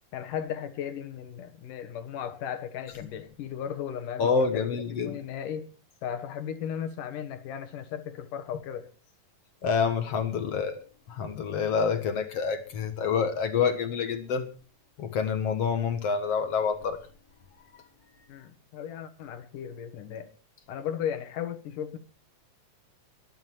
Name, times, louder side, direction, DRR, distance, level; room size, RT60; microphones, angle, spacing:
voice 1, 0.1-5.7 6.0-8.9 18.3-20.3 20.7-22.0, left 9 dB, 75° left, 3.0 m, -36 dB
voice 2, 4.2-5.2 9.6-10.8 11.1-14.5 15.0-17.0, left 6 dB, 55° left, 2.2 m, -27 dB
18.5 x 11.5 x 4.7 m
omnidirectional pair, 3.8 m